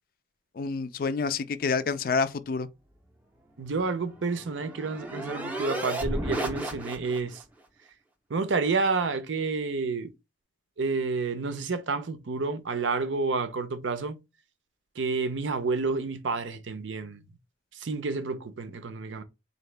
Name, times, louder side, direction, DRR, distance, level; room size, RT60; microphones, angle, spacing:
voice 1, 0.6-2.7, left 5 dB, 50° left, 0.3 m, -28 dB
voice 2, 3.6-7.4 8.3-10.1 10.8-14.2 15.0-17.2 17.7-19.2, right 4 dB, 80° right, 0.6 m, -29 dB
sound 1, 3.8-7.4, right 1 dB, 10° right, 0.5 m, -34 dB
3.9 x 2.7 x 3.2 m
head